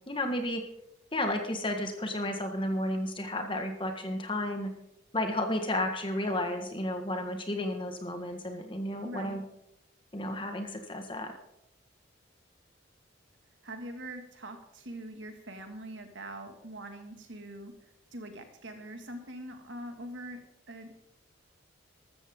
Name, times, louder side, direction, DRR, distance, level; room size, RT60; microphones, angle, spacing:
voice 1, 0.1-0.6 1.1-4.7 5.1-9.4 10.1-11.3, left 1 dB, 25° left, 5 dB, 1.6 m, -32 dB
voice 2, 9.0-9.4 13.6-20.4 20.7-21.1, right 1 dB, 70° right, 5 dB, 2.2 m, -43 dB
14.5 x 13.0 x 3.8 m, 0.81 s
head